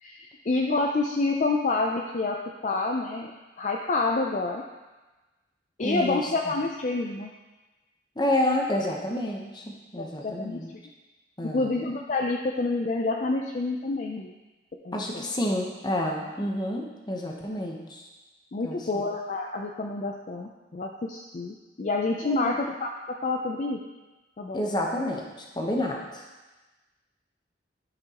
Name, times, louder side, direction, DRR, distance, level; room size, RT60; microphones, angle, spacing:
voice 1, 0.0-3.3 3.6-4.6 5.8-7.3 10.0-10.6 11.5-14.3 14.8-15.1 18.5-23.8 24.4-24.6, left 3 dB, 40° left, 1 dB, 0.4 m, -28 dB
voice 2, 5.8-6.3 8.2-10.7 11.4-11.8 14.9-18.1 18.6-19.0 22.2-22.6 24.5-26.2, left 1 dB, 20° left, 0 dB, 0.9 m, -29 dB
11.0 x 5.9 x 2.9 m, 1.2 s
head